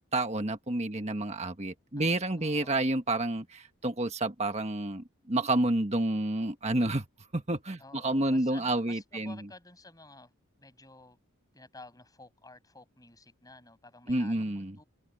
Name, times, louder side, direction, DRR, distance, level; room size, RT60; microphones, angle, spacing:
voice 1, 0.1-7.1 7.3-9.3 14.1-14.8, right 2 dB, 30° right, 1.5 m, -29 dB
voice 2, 2.0-2.8 7.8-10.3 10.6-11.2 11.5-14.8, left 2 dB, 15° left, 7.8 m, -52 dB
open air
head